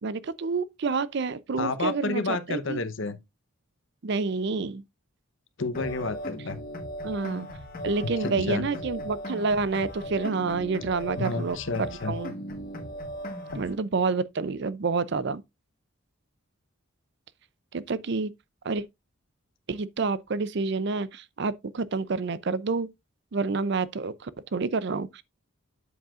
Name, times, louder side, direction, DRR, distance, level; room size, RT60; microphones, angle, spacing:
voice 1, 0.0-2.8 4.0-4.8 7.0-7.5 7.8-12.3 13.6-15.4 17.7-18.3 18.6-18.8 19.7-22.9 23.3-25.2, right 4 dB, 55° right, 0.5 m, -28 dB
voice 2, 1.6-3.2 5.6-6.6 8.2-8.7 11.2-12.1 13.5-13.6, left 3 dB, 65° left, 0.9 m, -30 dB
sound 1, 5.7-13.7, equal, 40° left, 1.4 m, -37 dB
8.0 x 7.6 x 2.4 m
head